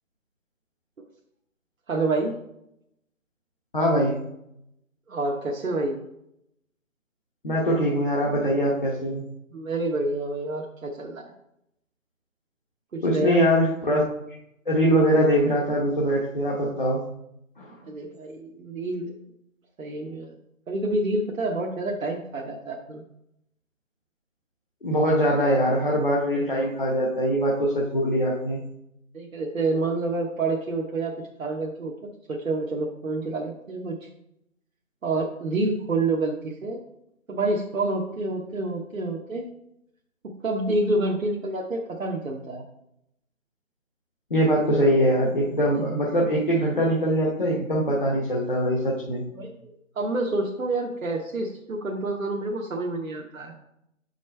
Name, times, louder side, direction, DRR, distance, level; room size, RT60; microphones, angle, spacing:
voice 1, 1.9-2.3 5.1-6.0 9.5-11.2 12.9-13.4 17.8-19.1 19.8-20.3 20.7-23.0 29.1-31.1 31.4-31.9 32.3-34.0 35.0-36.8 37.3-39.4 40.4-42.6 49.3-49.5 50.0-53.5, right 2 dB, 70° right, -1 dB, 1.1 m, -28 dB
voice 2, 3.7-4.2 7.4-9.3 13.0-14.0 14.3-14.4 14.7-17.0 17.6-17.8 24.8-28.6 44.3-49.2, equal, 40° left, -4 dB, 1.0 m, -22 dB
7.2 x 5.3 x 3.2 m, 0.80 s
figure-of-eight pair, 170°, 41 cm